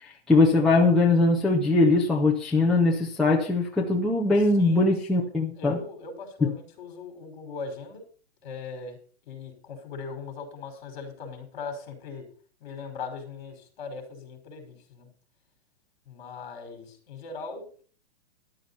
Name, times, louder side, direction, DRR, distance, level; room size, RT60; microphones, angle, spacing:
voice 1, 0.3-5.8 6.4-6.5, left 3 dB, ahead, -4 dB, 0.6 m, -21 dB
voice 2, 5.1-8.0 8.4-9.0 9.2-12.3 12.6-15.1 16.1-17.8, left 4 dB, 45° left, 5 dB, 5.3 m, -40 dB
14.0 x 11.5 x 4.2 m, 0.41 s
hypercardioid pair, 170°, 34 cm